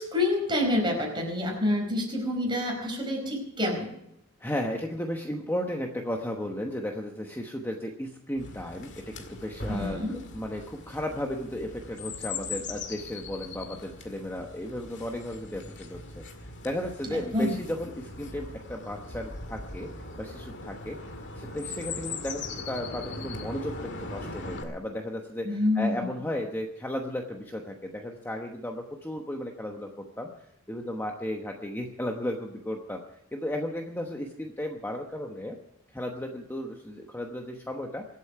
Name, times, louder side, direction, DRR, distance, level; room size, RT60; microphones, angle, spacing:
voice 1, 0.0-3.9 9.7-10.2 17.1-17.5 25.4-26.1, left 1 dB, 20° right, 1 dB, 4.7 m, -27 dB
voice 2, 4.4-10.0 10.3-19.9 20.2-21.0 21.3-30.3 30.7-33.0 33.3-35.6 35.9-38.1, left 1 dB, 10° left, 2 dB, 1.0 m, -34 dB
Chirp tweet, 8.4-24.6, left 3 dB, 55° left, 2.0 m, -40 dB
24.0 x 8.4 x 5.8 m, 0.82 s
head